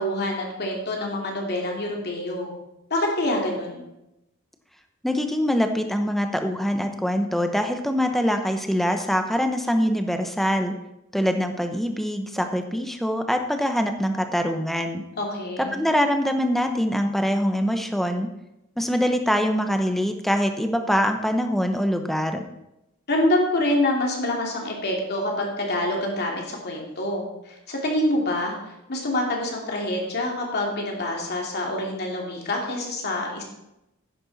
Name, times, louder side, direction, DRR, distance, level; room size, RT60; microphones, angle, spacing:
voice 1, 0.0-2.5 2.9-3.8 15.1-15.8 23.1-33.4, left 1 dB, 50° left, 0 dB, 2.6 m, -26 dB
voice 2, 5.0-10.7 11.1-15.0 15.7-18.3 18.8-22.4, equal, ahead, 6 dB, 0.9 m, -24 dB
11.0 x 9.8 x 4.1 m, 0.89 s
head